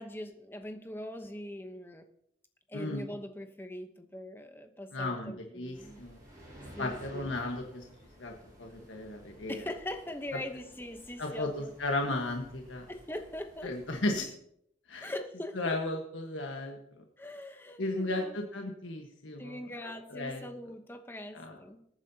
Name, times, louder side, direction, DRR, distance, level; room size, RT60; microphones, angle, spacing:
voice 1, 0.0-2.1 2.7-6.0 6.8-7.3 9.5-11.7 12.9-13.8 15.0-15.8 17.2-18.4 19.4-21.9, left 1 dB, 10° left, 6 dB, 0.9 m, -42 dB
voice 2, 2.7-3.0 4.9-6.2 6.8-7.8 8.2-8.3 8.6-9.6 11.2-12.8 13.6-14.3 14.9-15.1 15.5-16.8 17.8-19.6 20.1-20.4 21.3-21.5, left 2 dB, 90° left, 2 dB, 1.4 m, -34 dB
sound 1, 5.7-14.2, equal, 20° right, 5.2 m, -54 dB
21.0 x 9.3 x 2.8 m, 0.72 s
head